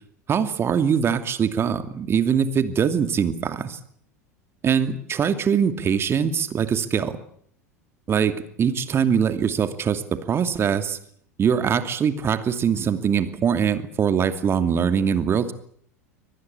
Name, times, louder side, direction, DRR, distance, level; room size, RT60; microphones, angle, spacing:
voice 1, 0.3-3.8 4.6-7.2 8.1-11.0 11.4-15.5, right 7 dB, 30° right, 10 dB, 2.6 m, -22 dB
24.0 x 19.5 x 8.5 m, 0.63 s
figure-of-eight pair, 80°, 9 cm